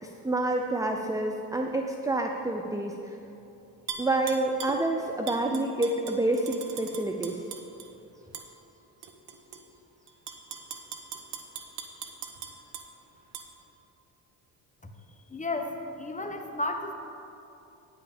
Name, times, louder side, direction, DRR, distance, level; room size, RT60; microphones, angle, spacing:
voice 1, 0.0-3.1 4.0-7.4, right 2 dB, 5° right, 3 dB, 0.6 m, -28 dB
Tap / Glass, 3.9-4.8 5.3-7.9 8.3-8.5 9.0-9.6 10.1-12.9 13.3-13.5, right 7 dB, 60° right, 1.2 m, -40 dB
voice 2, 15.3-16.9, left 2 dB, 15° left, 5 dB, 1.2 m, -33 dB
9.1 x 6.1 x 7.3 m, 2.9 s
hypercardioid pair, 55°, 46 cm